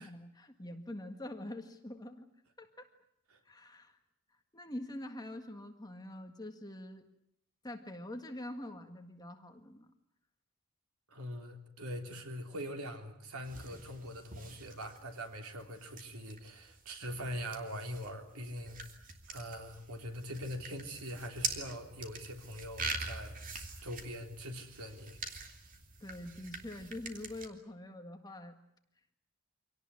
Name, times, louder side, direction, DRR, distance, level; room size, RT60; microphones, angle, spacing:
voice 1, 0.0-2.3 2.6-2.9 3.5-4.0 4.5-7.0 7.6-9.9 26.0-28.6, left 1 dB, 20° left, 5 dB, 1.8 m, -45 dB
voice 2, 11.1-18.8 19.3-23.4 23.8-25.2, equal, 90° right, 5 dB, 3.5 m, -42 dB
sound 1, 13.4-27.5, right 3 dB, 40° right, 2.7 m, -44 dB
25.5 x 18.0 x 9.9 m, 0.76 s
head